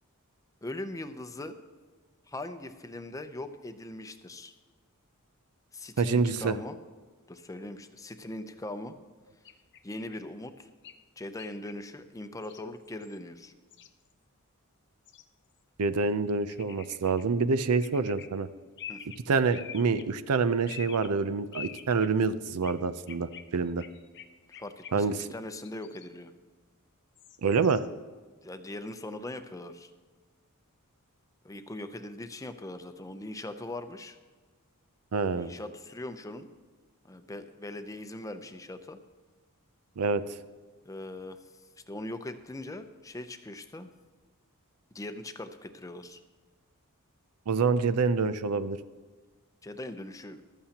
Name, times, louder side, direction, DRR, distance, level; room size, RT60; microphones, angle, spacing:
voice 1, 0.6-1.6 2.3-4.5 5.7-6.8 7.3-9.0 9.8-10.7 11.2-13.5 18.9-19.0 24.5-26.3 28.4-29.9 31.4-34.2 35.4-36.5 37.0-39.0 40.8-41.4 41.9-43.9 44.9-46.2 49.6-50.4, left 1 dB, 15° left, 9 dB, 0.6 m, -40 dB
voice 2, 6.0-6.5 15.8-18.5 19.3-23.8 24.9-25.3 27.4-27.8 35.1-35.5 40.0-40.2 47.5-48.8, right 4 dB, 80° right, 13 dB, 0.6 m, -27 dB
sound 1, 9.4-10.2 10.8-11.0 11.4-11.7 12.4-12.6 12.9-13.2 13.7-14.1 15.1-15.2 16.5-17.2 17.7-18.3 18.8-20.1 20.7-21.1 21.5-22.1 22.6-22.7 23.1-25.2 25.6-26.1 27.2-27.9, left 8 dB, 50° left, 0.7 m, -46 dB
14.5 x 13.0 x 2.9 m, 1.4 s
head